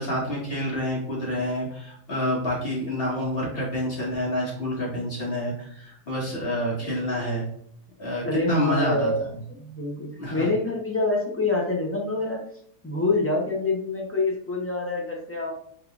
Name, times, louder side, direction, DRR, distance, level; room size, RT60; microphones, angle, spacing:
voice 1, 0.0-7.5 8.0-9.3 10.2-10.5, equal, 35° left, -4 dB, 1.8 m, -28 dB
voice 2, 8.2-9.2 9.6-12.4 12.8-15.5, left 2 dB, 20° left, -2 dB, 0.4 m, -26 dB
5.5 x 3.4 x 2.4 m, 0.67 s
omnidirectional pair, 1.7 m